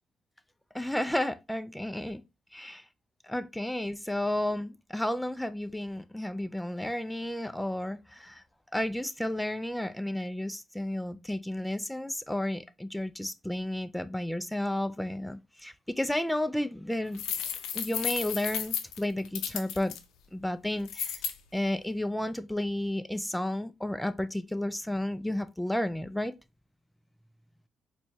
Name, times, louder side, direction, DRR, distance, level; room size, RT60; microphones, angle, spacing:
voice 1, 0.7-2.2 2.5-2.8 3.3-8.4 8.7-20.0 20.3-21.2 21.5-26.3, left 1 dB, 5° left, 0.3 m, -32 dB
sound 1, 17.1-20.0 20.9-21.3, left 8 dB, 90° left, 0.5 m, -33 dB
4.3 x 2.2 x 3.0 m
cardioid pair, 90°, 0 cm